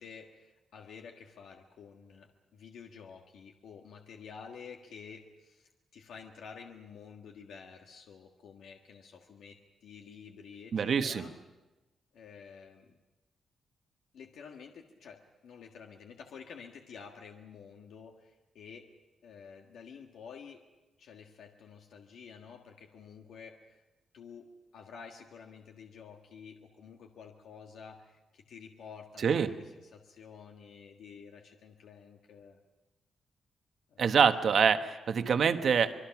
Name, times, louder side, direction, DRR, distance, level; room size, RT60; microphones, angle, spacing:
voice 1, 0.0-11.3 12.1-13.0 14.1-18.9 19.2-20.6 21.0-23.8 24.1-32.6 33.9-34.2, left 6 dB, 80° left, 2 dB, 1.6 m, -50 dB
voice 2, 10.7-11.3 29.2-29.5 34.0-35.9, right 6 dB, 50° right, 8 dB, 1.2 m, -25 dB
25.5 x 23.0 x 6.0 m, 1.1 s
wide cardioid pair, 160°, 0 cm